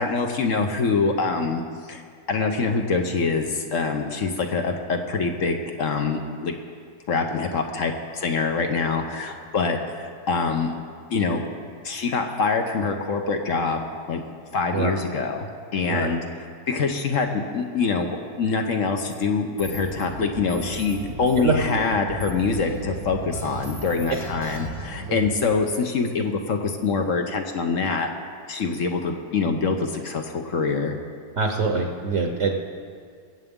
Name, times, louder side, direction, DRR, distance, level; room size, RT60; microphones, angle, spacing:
voice 1, 0.0-1.6 1.9-2.0 2.3-6.5 7.1-10.7 11.1-11.4 11.8-14.2 14.5-16.2 16.7-28.1 28.5-31.0, left 4 dB, 55° left, 4 dB, 1.1 m, -25 dB
sound 1, 19.0-19.1 19.6-20.0 20.5-20.9 21.3-21.9 22.2-22.8 23.3-24.9, left 2 dB, 80° left, 2.8 m, -44 dB
sound 2, 19.6-25.3, right 2 dB, 75° right, 2.0 m, -36 dB
voice 2, 21.0-21.5 25.1-25.2 31.4-32.5, right 4 dB, 50° right, 2 dB, 1.2 m, -25 dB
24.0 x 8.0 x 3.7 m, 2.1 s
omnidirectional pair, 1.7 m